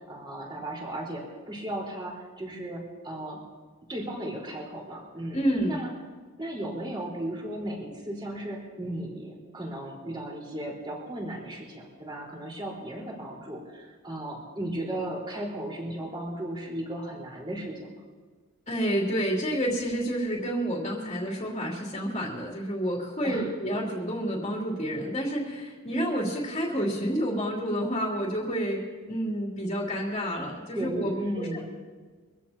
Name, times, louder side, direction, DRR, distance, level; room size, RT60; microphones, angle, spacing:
voice 1, 0.1-3.4 3.9-5.4 5.7-5.9 6.4-17.9 23.2-23.5 30.7-31.6, right 1 dB, 20° right, -3 dB, 4.3 m, -35 dB
voice 2, 5.3-5.8 18.7-28.8 29.1-31.6, equal, 30° left, -3 dB, 2.8 m, -29 dB
25.0 x 15.5 x 2.9 m, 1.4 s
head